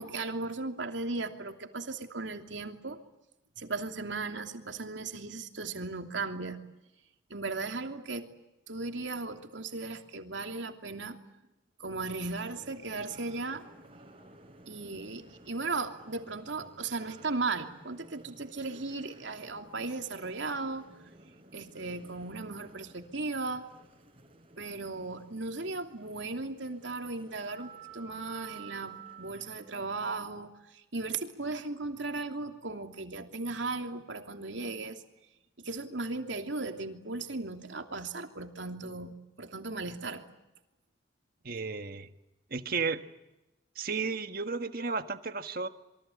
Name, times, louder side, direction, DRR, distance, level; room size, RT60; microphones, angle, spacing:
voice 1, 0.0-3.0 3.6-6.6 7.3-8.3 8.7-11.2 11.8-13.6 14.7-20.8 21.5-23.6 24.6-35.0 35.6-39.1 39.4-40.2, right 3 dB, 80° right, 5 dB, 2.9 m, -36 dB
sound 1, 12.6-29.7, right 4 dB, 30° right, 4.4 m, -54 dB
voice 2, 41.4-42.1 42.5-43.0 43.7-45.7, right 4 dB, 50° right, 9 dB, 1.6 m, -33 dB
27.5 x 23.5 x 8.6 m, 0.94 s
head